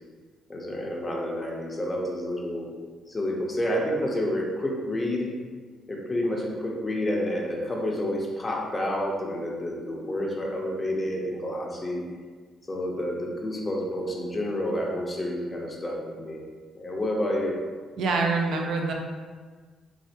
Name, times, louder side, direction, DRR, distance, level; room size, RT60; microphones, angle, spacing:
voice 1, 0.5-2.7 3.1-5.3 5.9-12.0 12.7-16.4 16.7-17.5, left 1 dB, 20° left, -2 dB, 0.5 m, -29 dB
voice 2, 18.0-18.9, right 3 dB, 65° right, 2 dB, 0.4 m, -25 dB
4.1 x 2.3 x 2.7 m, 1.5 s
cardioid pair, 150°, 0 cm